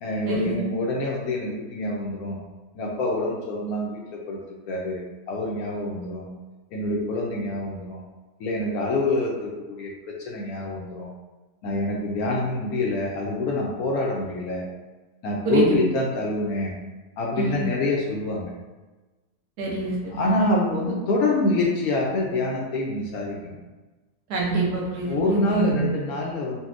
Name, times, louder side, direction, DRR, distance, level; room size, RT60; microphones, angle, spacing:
voice 1, 0.0-2.4 2.7-6.3 6.7-8.0 8.4-11.1 11.6-14.6 15.2-16.7 17.2-18.6 20.1-23.6 25.0-26.6, left 2 dB, 70° left, -2 dB, 0.9 m, -26 dB
voice 2, 15.4-15.8 17.4-17.6 19.6-20.4 24.3-25.8, right 3 dB, 70° right, -3 dB, 1.1 m, -26 dB
4.1 x 2.1 x 2.4 m, 1.2 s
omnidirectional pair, 1.8 m